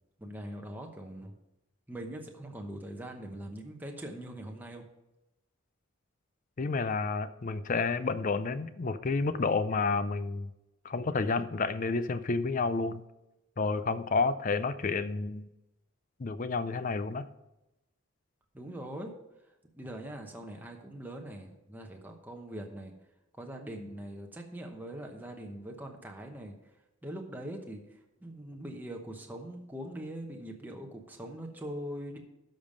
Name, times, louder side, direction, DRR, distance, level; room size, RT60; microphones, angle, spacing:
voice 1, 0.2-1.3 1.9-4.9 18.5-19.1 19.7-22.9 23.4-26.5 27.0-32.2, right 1 dB, 10° right, 2 dB, 0.9 m, -42 dB
voice 2, 6.6-10.5 10.8-13.0 13.6-15.5 16.2-17.3, left 4 dB, 40° left, 13 dB, 0.4 m, -30 dB
12.5 x 5.2 x 5.3 m, 0.95 s
head